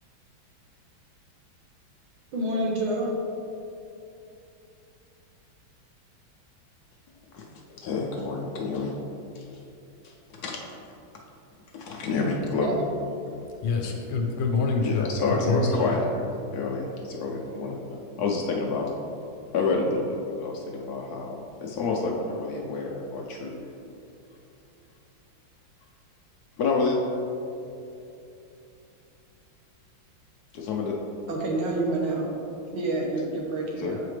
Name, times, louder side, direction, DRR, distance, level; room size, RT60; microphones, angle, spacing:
voice 1, 2.3-3.2 12.6-12.7 31.3-32.3 32.7-34.0, right 2 dB, 80° right, -1 dB, 1.7 m, -28 dB
voice 2, 7.8-8.9 9.3-9.5 10.0-10.7 11.7-12.7 14.8-18.9 19.5-23.6 26.6-27.0 30.5-30.9 33.8-34.0, left 3 dB, 70° left, -1 dB, 0.9 m, -29 dB
voice 3, 13.6-15.8, left 3 dB, 90° left, 2 dB, 1.6 m, -26 dB
7.7 x 5.0 x 3.2 m, 2.7 s
omnidirectional pair, 2.2 m